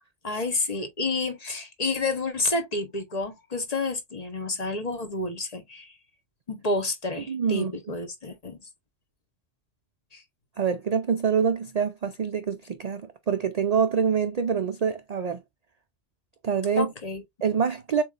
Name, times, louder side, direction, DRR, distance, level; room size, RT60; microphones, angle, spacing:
voice 1, 0.2-5.9 6.5-8.6 10.1-10.2 16.8-17.2, left 3 dB, 35° left, 1.0 m, -29 dB
voice 2, 7.3-7.7 10.6-15.4 16.4-16.9 17.4-18.0, right 7 dB, 55° right, 0.4 m, -25 dB
7.0 x 3.1 x 2.4 m
omnidirectional pair, 1.2 m